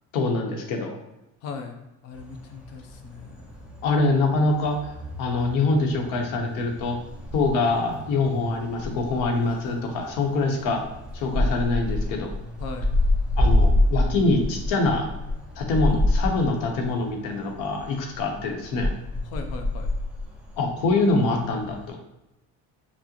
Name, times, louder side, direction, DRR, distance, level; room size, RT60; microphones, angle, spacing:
voice 1, 0.1-1.0 3.8-4.8 5.2-7.0 7.3-10.8 11.1-12.3 13.4-15.1 15.6-18.9 20.6-22.0, left 3 dB, 80° left, 3 dB, 0.9 m, -24 dB
voice 2, 1.4-1.7 2.0-3.6 12.6-12.9 19.3-19.9, left 5 dB, 50° left, 5 dB, 0.6 m, -38 dB
sound 1, 2.1-21.9, left 1 dB, 5° right, 0.3 m, -28 dB
6.0 x 2.0 x 2.9 m, 0.93 s
cardioid pair, 165°, 33 cm